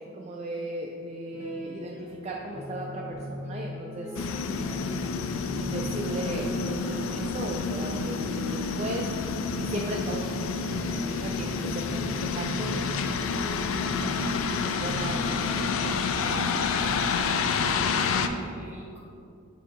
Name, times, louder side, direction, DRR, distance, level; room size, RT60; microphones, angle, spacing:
voice 1, 0.1-4.2 5.5-10.3 10.7-12.9 13.9-15.4, right 1 dB, 30° right, -1 dB, 0.3 m, -36 dB
sound 1, 1.3-16.6, left 1 dB, 40° left, 1.0 m, -41 dB
sound 2, 4.1-18.3, left 5 dB, 75° left, 0.3 m, -29 dB
voice 2, 16.2-17.5 17.9-19.0, equal, 10° right, -6 dB, 1.1 m, -40 dB
7.4 x 2.8 x 4.8 m, 2.5 s
head